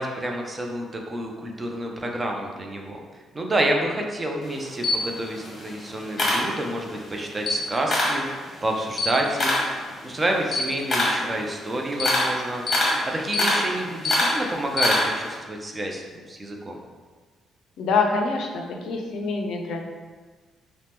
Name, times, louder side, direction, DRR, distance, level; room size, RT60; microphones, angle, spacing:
voice 1, 0.0-3.0 3.3-9.6 10.0-12.6 13.1-16.8, right 1 dB, 25° right, 1 dB, 0.4 m, -28 dB
Camera, 4.4-7.0 7.3-8.3 8.6-15.3, left 1 dB, 35° left, 0.8 m, -24 dB
voice 2, 17.8-19.8, left 4 dB, 80° left, 2 dB, 0.4 m, -25 dB
2.8 x 2.0 x 3.3 m, 1.4 s
cardioid pair, 90°, 0 cm